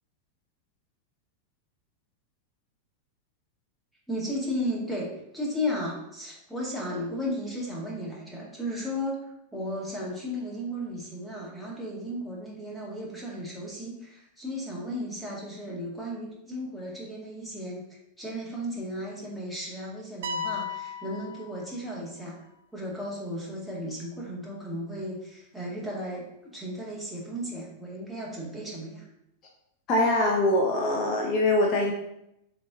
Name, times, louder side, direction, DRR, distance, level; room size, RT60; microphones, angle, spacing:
voice 1, 4.1-9.2 9.5-22.4 22.7-29.1, equal, ahead, -5 dB, 2.1 m, -35 dB
sound 1, 20.2-22.1, left 4 dB, 60° right, 0.5 m, -35 dB
voice 2, 29.9-31.9, left 1 dB, 35° left, -1 dB, 1.0 m, -23 dB
7.3 x 3.5 x 3.7 m, 0.81 s
figure-of-eight pair, 90°, 0 cm